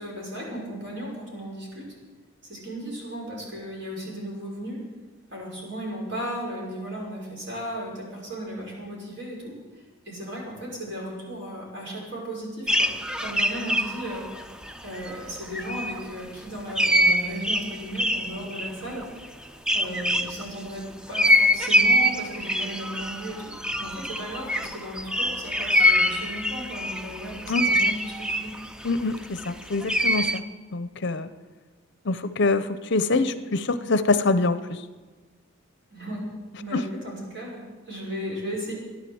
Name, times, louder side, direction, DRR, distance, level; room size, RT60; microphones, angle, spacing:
voice 1, 0.0-1.9 2.4-4.8 5.3-14.5 14.8-19.0 19.7-23.5 23.8-28.5 35.9-36.2 36.6-38.7, equal, 55° right, -3 dB, 5.8 m, -35 dB
sound 1, 12.7-15.3 15.5-16.0 16.7-20.4 21.1-30.4, equal, 5° right, 0.4 m, -24 dB
voice 2, 28.8-30.4 30.7-31.3 32.1-34.8 36.7-36.8, left 3 dB, 55° left, 12 dB, 0.7 m, -25 dB
14.5 x 10.5 x 7.8 m, 1.3 s
head